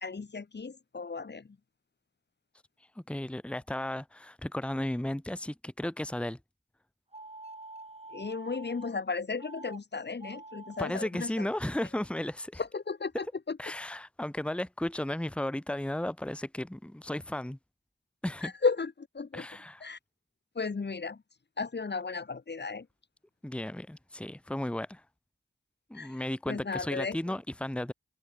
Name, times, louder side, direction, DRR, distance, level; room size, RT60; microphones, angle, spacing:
voice 1, 0.0-1.6 8.1-11.5 12.6-13.6 18.4-19.5 19.8-20.0 20.6-21.2 21.6-22.9 25.9-26.2 26.5-27.2, left 4 dB, 60° left, 1.7 m, -34 dB
voice 2, 3.0-6.4 10.8-12.6 13.6-17.6 18.2-18.5 19.3-19.8 23.4-25.0 25.9-27.9, left 1 dB, 5° left, 1.1 m, -34 dB
sound 1, 7.1-8.9 9.4-9.8 10.1-11.0, right 2 dB, 30° right, 2.2 m, -47 dB
open air
cardioid pair, 50°, 20 cm